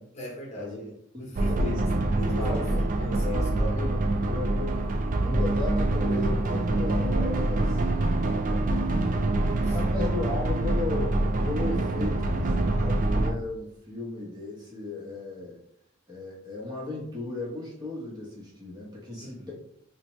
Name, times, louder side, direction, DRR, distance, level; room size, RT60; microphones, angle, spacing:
voice 1, 0.1-3.9 9.6-9.8 19.2-19.5, right 1 dB, 35° left, -2 dB, 0.9 m, -39 dB
voice 2, 1.2-1.8 2.2-2.8 3.2-4.0 4.3-4.8 5.2-7.8 9.7-15.6 16.1-19.5, left 3 dB, 20° right, -3 dB, 0.9 m, -35 dB
sound 1, 1.4-13.3, right 2 dB, 40° right, 0.4 m, -25 dB
4.1 x 2.2 x 3.0 m, 0.73 s
head